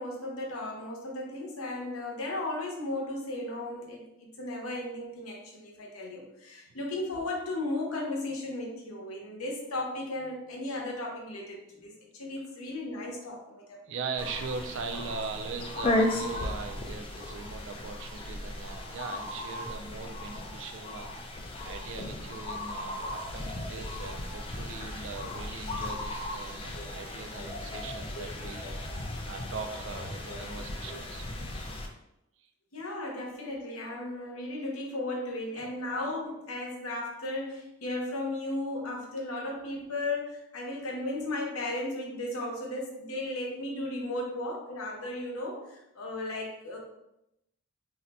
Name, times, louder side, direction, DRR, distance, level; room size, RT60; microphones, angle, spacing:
voice 1, 0.0-13.8 26.7-26.9 27.3-27.5 28.4-28.7 30.3-30.4 30.8-31.0 32.7-46.8, left 2 dB, 85° left, -1 dB, 0.8 m, -35 dB
voice 2, 13.9-21.1 21.6-28.7 29.2-31.2 32.4-32.5 35.6-35.7, right 5 dB, 60° right, 7 dB, 0.3 m, -40 dB
sound 1, 14.2-31.9, left 1 dB, 25° left, 0.3 m, -36 dB
2.7 x 2.1 x 4.0 m, 0.85 s
head